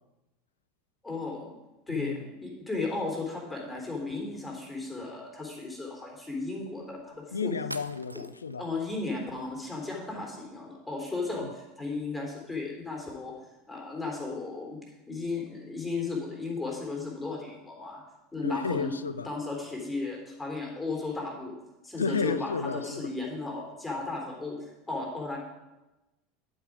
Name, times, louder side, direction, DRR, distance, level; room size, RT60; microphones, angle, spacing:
voice 1, 1.0-1.5 1.9-7.5 8.6-13.3 13.7-14.8 15.1-18.0 18.3-19.0 19.2-21.5 21.8-24.6 24.9-25.4, left 3 dB, 10° left, 3.7 m, -35 dB
sound 1, 7.1-7.2 7.7-8.6, right 1 dB, 90° right, 0.4 m, -42 dB
voice 2, 7.3-8.6 18.4-19.3 22.0-23.0, left 5 dB, 80° left, 0.5 m, -32 dB
11.5 x 7.9 x 4.9 m
figure-of-eight pair, 75°, 0 cm